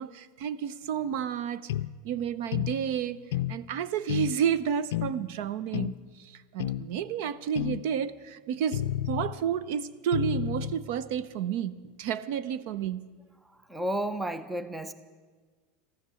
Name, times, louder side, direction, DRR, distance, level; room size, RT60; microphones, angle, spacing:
voice 1, 0.0-1.7 2.0-3.2 3.5-13.1, right 8 dB, 55° right, 0.6 m, -31 dB
sound 1, 1.7-1.9 2.5-2.8 3.3-3.6 4.1-4.4 4.9-5.2 5.7-6.0 6.6-6.9 7.6-7.8 8.7-9.4 10.1-10.8, left 13 dB, 85° left, 0.4 m, -30 dB
voice 2, 13.4-14.9, right 1 dB, 5° right, 0.5 m, -32 dB
14.5 x 13.5 x 7.0 m
supercardioid pair, 175°, 0 cm